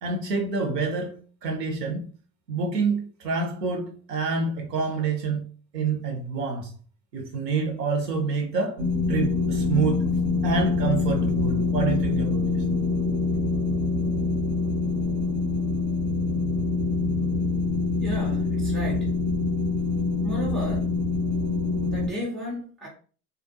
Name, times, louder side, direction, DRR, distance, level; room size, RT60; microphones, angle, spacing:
voice 1, 0.0-2.1 2.5-6.8 7.1-8.8 9.1-10.1 10.4-12.6, right 4 dB, 85° right, 0.9 m, -27 dB
sound 1, 8.8-22.1, left 3 dB, 55° right, 0.6 m, -25 dB
voice 2, 18.0-19.1 20.2-21.0 21.9-22.9, equal, ahead, 0.3 m, -34 dB
2.5 x 2.0 x 2.7 m
hypercardioid pair, 100°, 47 cm